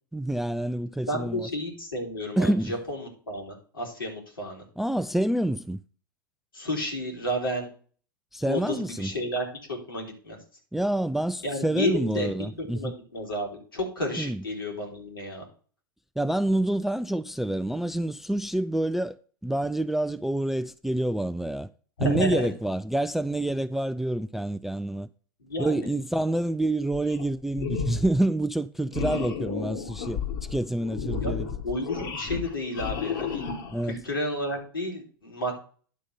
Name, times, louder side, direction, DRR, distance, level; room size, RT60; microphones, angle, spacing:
voice 1, 0.1-1.5 2.4-2.7 4.8-5.8 8.3-9.1 10.7-12.9 14.2-14.4 16.2-19.2 19.4-21.7 22.0-25.1 25.6-30.2 30.5-31.5 33.7-34.0, right 1 dB, ahead, 0.3 m, -27 dB
voice 2, 1.1-4.6 6.5-7.7 8.4-10.4 11.4-12.3 12.7-15.4 22.0-22.5 25.4-25.9 31.2-31.3 31.6-33.4 33.9-35.6, equal, 80° left, 3.5 m, -31 dB
sound 1, 26.9-27.3 27.5-28.2 28.9-33.9, left 6 dB, 60° left, 1.9 m, -32 dB
10.5 x 3.6 x 6.7 m
figure-of-eight pair, 85°, 11 cm